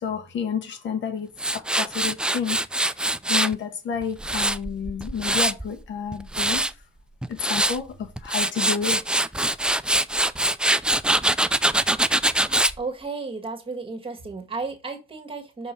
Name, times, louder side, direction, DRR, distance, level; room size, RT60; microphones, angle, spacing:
voice 1, 0.0-1.3 1.5-2.6 3.0-6.7 7.3-9.0, left 6 dB, 70° left, 1.3 m, -30 dB
Tools, 1.4-3.5 4.0-5.7 6.1-6.7 7.2-7.8 8.2-12.8, right 1 dB, 5° right, 0.3 m, -23 dB
voice 2, 12.8-15.7, right 4 dB, 25° right, 1.7 m, -33 dB
6.1 x 3.7 x 5.4 m
cardioid pair, 90°, 20 cm